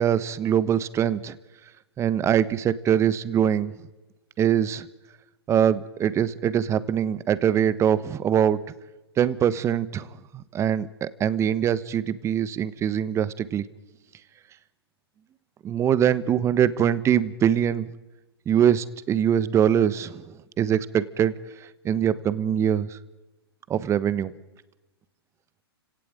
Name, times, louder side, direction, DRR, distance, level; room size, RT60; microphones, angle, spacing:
voice 1, 0.0-1.4 2.0-3.7 4.4-4.9 5.5-8.6 9.2-10.1 10.3-13.6 15.6-17.9 18.5-20.2 20.6-21.3 21.6-23.0 23.7-24.3, right 9 dB, 20° right, 16 dB, 1.2 m, -23 dB
29.5 x 17.5 x 9.0 m, 1.1 s
hypercardioid pair, 125°, 13 cm